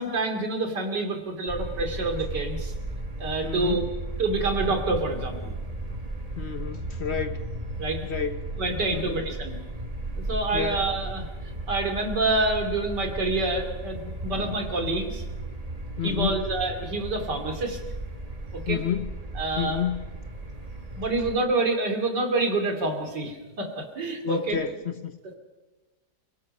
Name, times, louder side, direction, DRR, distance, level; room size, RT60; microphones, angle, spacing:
voice 1, 0.0-2.7 3.2-3.8 4.2-5.5 7.8-8.0 8.6-9.6 10.1-11.3 11.7-15.2 16.0-17.8 18.5-18.8 19.4-19.8 20.9-24.6, right 2 dB, 90° right, 3.3 m, -27 dB
sound 1, 1.5-21.4, right 2 dB, 25° right, 1.7 m, -35 dB
voice 2, 3.4-3.8 6.4-7.4 8.0-8.5 8.9-9.2 10.5-10.8 14.3-14.6 16.0-16.4 18.7-19.1 19.6-20.0 24.2-25.3, left 8 dB, 50° left, 0.9 m, -30 dB
29.0 x 17.5 x 5.4 m
omnidirectional pair, 1.8 m